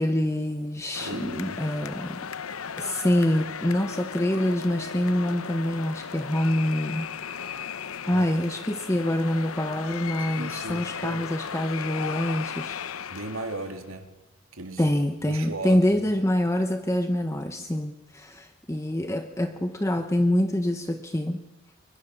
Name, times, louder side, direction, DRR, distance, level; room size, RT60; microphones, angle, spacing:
voice 1, 0.0-2.3 2.8-7.1 8.1-12.8 14.8-21.4, left 1 dB, 15° left, 7 dB, 1.0 m, -26 dB
sound 1, 0.9-13.9, left 7 dB, 75° left, 0.8 m, -36 dB
voice 2, 1.0-1.6 8.0-8.3 10.3-11.2 13.1-14.1 14.5-14.9 15.2-16.0, right 2 dB, 70° right, 6 dB, 3.0 m, -36 dB
29.5 x 24.0 x 6.9 m, 1.0 s
head